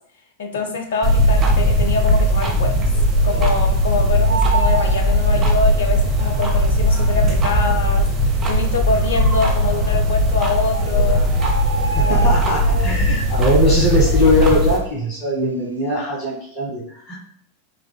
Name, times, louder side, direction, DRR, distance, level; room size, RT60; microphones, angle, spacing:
voice 1, 0.4-2.9 3.2-8.1 8.5-11.3 12.0-12.3 12.9-13.2, left 4 dB, 60° left, 4 dB, 0.6 m, -24 dB
sound 1, 1.0-14.8, equal, 30° right, 0.7 m, -18 dB
Bird, 2.2-2.3 2.6-3.8 4.1-5.9 6.7-6.8 7.5-7.6 7.8-7.9 8.5-9.0 9.9-10.0 10.4-10.5 10.7-13.0 13.3-13.7 14.0-15.4 15.7-15.9, right 3 dB, 75° right, 0.3 m, -28 dB
voice 2, 11.9-17.1, left 1 dB, 40° left, -6 dB, 1.5 m, -20 dB
5.0 x 2.9 x 2.2 m, 0.66 s
figure-of-eight pair, 90°, 0 cm